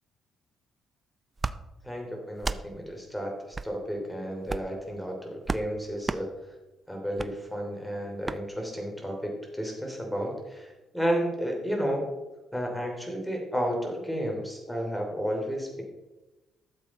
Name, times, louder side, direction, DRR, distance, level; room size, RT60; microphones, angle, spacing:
sound 1, 1.4-1.6 2.4-2.6 3.5-3.7 4.4-4.8 5.5-5.7 6.0-6.2 7.2-7.3 8.2-8.4, right 3 dB, 20° right, 0.5 m, -32 dB
voice 1, 1.8-6.3 6.9-12.0 12.5-15.8, equal, 5° left, 1 dB, 2.9 m, -32 dB
13.0 x 7.5 x 4.2 m, 1.1 s
cardioid pair, 105°, 0 cm